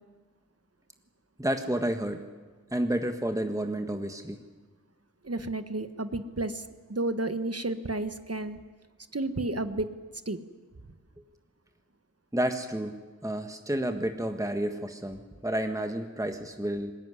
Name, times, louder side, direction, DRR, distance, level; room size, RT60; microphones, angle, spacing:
voice 1, 1.4-2.2 2.7-4.4 12.3-12.9 13.2-16.9, right 1 dB, 10° right, 6 dB, 1.6 m, -30 dB
voice 2, 5.2-8.6 9.1-9.9 10.2-10.4, right 2 dB, 50° right, 10 dB, 1.4 m, -32 dB
20.5 x 19.0 x 9.8 m, 1.4 s
wide cardioid pair, 40°, 30 cm